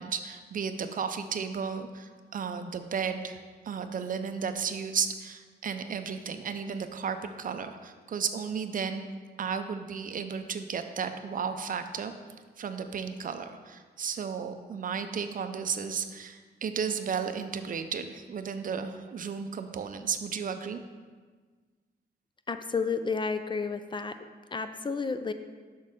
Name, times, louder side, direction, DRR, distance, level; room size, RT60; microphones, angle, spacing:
voice 1, 0.0-3.4 3.6-9.1 9.4-12.1 12.6-20.8, right 6 dB, 50° right, 8 dB, 0.5 m, -34 dB
voice 2, 22.5-24.1 24.5-25.3, left 4 dB, 25° left, 9 dB, 0.4 m, -31 dB
6.5 x 6.3 x 3.5 m, 1.5 s
cardioid pair, 80°, 18 cm